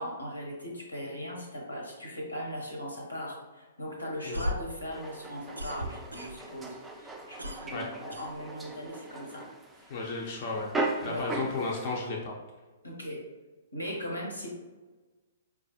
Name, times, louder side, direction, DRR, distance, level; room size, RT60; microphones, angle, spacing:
voice 1, 0.0-9.5 9.8-10.0 11.0-11.3 12.8-13.2 13.7-14.5, equal, 90° left, -1 dB, 1.0 m, -39 dB
sound 1, 4.1-6.7 7.0-8.9, equal, 90° right, 0.3 m, -37 dB
sound 2, 4.9-12.1, right 2 dB, 10° right, 0.4 m, -38 dB
voice 2, 9.9-10.7 11.0-12.3, left 3 dB, 45° left, -2 dB, 0.5 m, -33 dB
4.6 x 2.4 x 2.7 m, 1.3 s
figure-of-eight pair, 115°, 0 cm